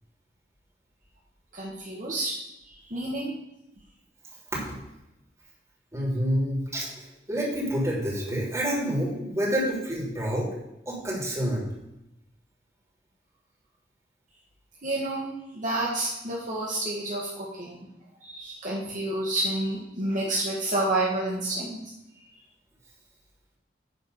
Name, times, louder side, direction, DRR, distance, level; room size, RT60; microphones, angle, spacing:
voice 1, 1.5-2.3 2.9-3.3 14.8-15.3 15.5-17.9 18.2-21.8, right 2 dB, 45° right, -4 dB, 1.6 m, -29 dB
voice 2, 5.9-10.5 10.9-11.7, equal, 15° right, -5 dB, 3.1 m, -28 dB
10.5 x 4.4 x 6.9 m, 0.87 s
head